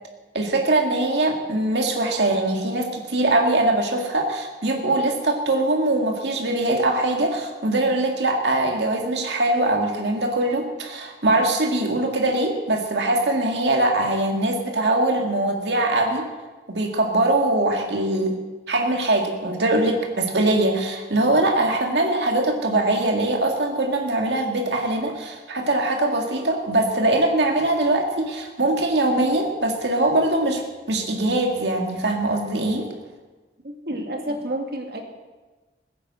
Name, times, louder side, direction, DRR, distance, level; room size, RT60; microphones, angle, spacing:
voice 1, 0.3-16.2 16.7-18.4 18.7-30.6 30.9-32.9, right 2 dB, 85° right, 2 dB, 2.1 m, -22 dB
voice 2, 33.6-35.0, right 1 dB, 60° right, 3 dB, 2.2 m, -30 dB
16.0 x 9.9 x 7.7 m, 1.3 s
head